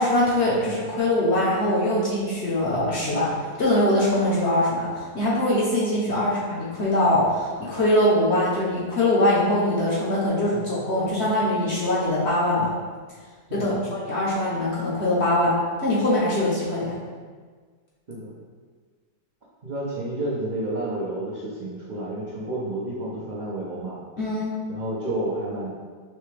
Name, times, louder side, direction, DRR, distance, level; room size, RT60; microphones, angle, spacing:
voice 1, 0.0-12.7 13.5-15.6 15.8-17.0 24.2-24.5, left 1 dB, 50° left, -6 dB, 0.8 m, -22 dB
voice 2, 13.5-13.9 18.1-18.3 19.6-24.0 24.7-25.7, right 1 dB, 80° right, -8 dB, 0.4 m, -31 dB
4.2 x 3.3 x 3.2 m, 1.6 s
omnidirectional pair, 1.9 m